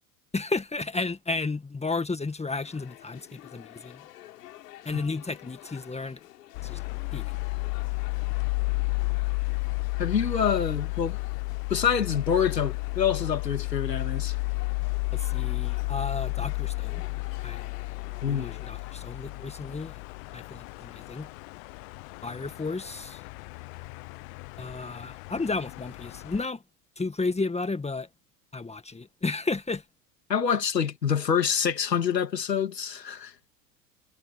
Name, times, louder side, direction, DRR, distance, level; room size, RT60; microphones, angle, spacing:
voice 1, 0.3-4.0 4.9-6.2 6.6-6.8 7.1-7.2 15.1-17.0 17.4-17.7 18.3-20.0 20.3-21.3 22.2-23.2 24.6-26.6 27.0-28.1 28.5-29.8, left 3 dB, 15° left, 2.0 m, -32 dB
sound 1, 2.5-18.9, left 14 dB, 75° left, 5.8 m, -49 dB
sound 2, 6.5-26.4, left 29 dB, 55° left, 1.2 m, -32 dB
voice 2, 10.0-11.2 11.7-14.3 18.2-18.6 30.3-33.3, left 7 dB, 90° left, 3.0 m, -26 dB
hypercardioid pair, 80°, 48 cm